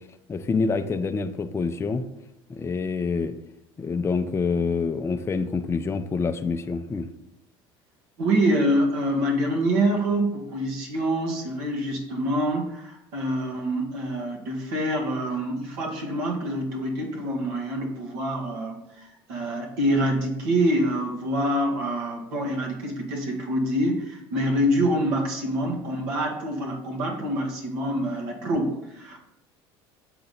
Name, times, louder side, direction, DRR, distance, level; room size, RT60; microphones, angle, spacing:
voice 1, 0.3-2.0 2.5-3.4 3.8-7.1, left 4 dB, 20° left, 8 dB, 0.4 m, -26 dB
voice 2, 8.2-29.2, right 1 dB, 75° right, 1 dB, 1.4 m, -26 dB
6.7 x 3.9 x 4.1 m, 0.84 s
hypercardioid pair, 80°, 13 cm